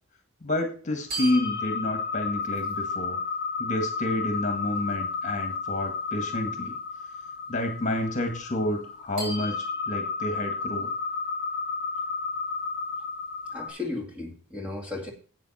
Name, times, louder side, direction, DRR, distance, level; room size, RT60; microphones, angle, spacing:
voice 1, 0.4-3.2 3.6-6.7 7.5-10.9, left 1 dB, 35° left, 5 dB, 1.8 m, -29 dB
sound 1, 1.1-13.7, left 4 dB, 45° right, 4.9 m, -32 dB
voice 2, 13.5-15.1, left 3 dB, 5° right, 0 dB, 2.2 m, -35 dB
12.5 x 8.5 x 4.2 m, 0.41 s
head